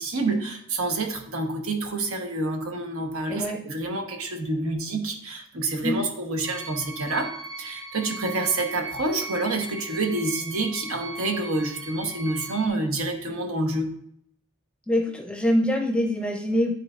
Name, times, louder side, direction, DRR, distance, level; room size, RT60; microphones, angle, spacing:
voice 1, 0.0-7.3 7.6-13.9, right 2 dB, 85° right, 3 dB, 1.1 m, -28 dB
sound 1, 6.4-12.7, right 3 dB, 20° right, 1.4 m, -38 dB
voice 2, 14.9-16.8, equal, 5° left, 2 dB, 0.6 m, -24 dB
10.0 x 3.9 x 2.5 m, 0.69 s
head